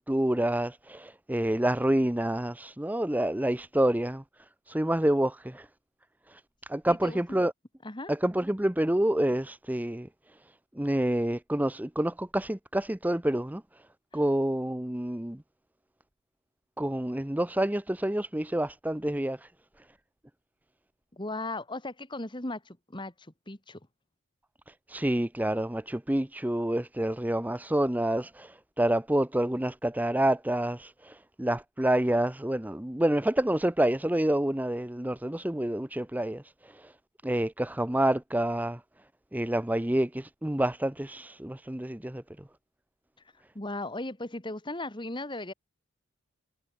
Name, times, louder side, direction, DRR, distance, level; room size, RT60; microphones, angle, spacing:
voice 1, 0.0-4.2 4.7-5.7 6.3-6.4 6.7-7.5 8.1-10.1 10.8-13.6 14.1-15.4 16.8-19.5 24.9-36.9 37.2-38.8 39.3-42.2, right 1 dB, 5° right, 0.6 m, -28 dB
voice 2, 6.9-7.2 7.8-8.1 14.1-14.2 21.1-23.9 43.5-45.5, left 2 dB, 20° left, 1.9 m, -37 dB
head